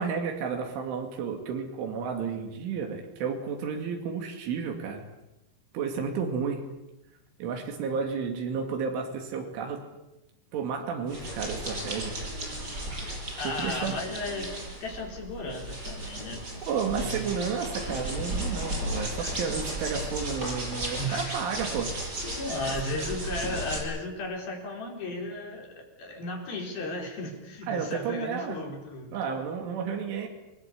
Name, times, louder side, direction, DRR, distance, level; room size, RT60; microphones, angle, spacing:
voice 1, 0.0-5.1 5.7-6.6 7.4-9.8 10.5-12.2 13.4-13.9 16.6-21.9 27.7-28.6 29.1-30.3, right 6 dB, 90° right, 3 dB, 5.0 m, -32 dB
sound 1, 11.1-23.8, right 1 dB, 20° right, 7.5 m, -35 dB
voice 2, 13.4-16.4 17.0-18.1 19.2-19.3 21.0-21.4 22.3-29.2, left 1 dB, 55° left, 1 dB, 6.0 m, -35 dB
29.5 x 20.0 x 8.5 m, 0.98 s
omnidirectional pair, 5.4 m